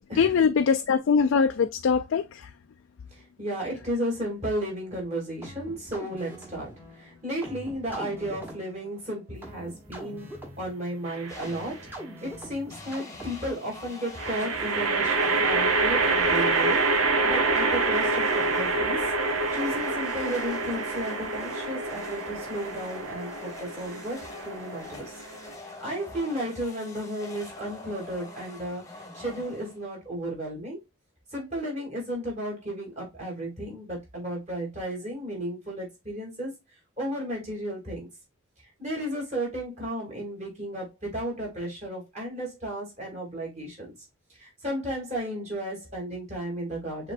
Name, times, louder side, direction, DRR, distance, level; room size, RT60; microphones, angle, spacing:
voice 1, 0.2-2.5, left 6 dB, 60° left, 0.3 m, -22 dB
voice 2, 3.1-11.9 12.2-25.1 25.6-30.8 31.3-36.5 37.0-38.1 38.8-43.9 44.4-47.1, right 1 dB, 30° right, 2.6 m, -34 dB
sound 1, 5.4-13.6, equal, 10° right, 1.1 m, -43 dB
sound 2, 11.1-11.6 14.2-25.5, right 3 dB, 90° right, 1.0 m, -27 dB
sound 3, 11.3-12.0 12.7-30.0, left 2 dB, 15° left, 1.0 m, -44 dB
6.5 x 3.1 x 2.5 m
head